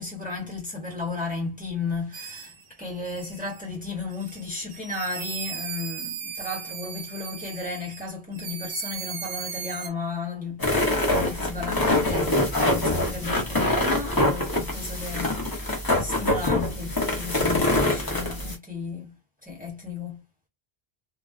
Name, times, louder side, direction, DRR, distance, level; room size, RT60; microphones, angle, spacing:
voice 1, 0.0-19.2 19.4-20.2, left 4 dB, 10° right, 1.0 m, -34 dB
sound 1, 2.1-2.6 3.0-3.6 4.1-8.1 8.3-9.9, right 7 dB, 70° right, 0.8 m, -37 dB
sound 2, 10.6-18.5, left 1 dB, 25° left, 0.7 m, -24 dB
2.4 x 2.3 x 2.4 m
omnidirectional pair, 1.1 m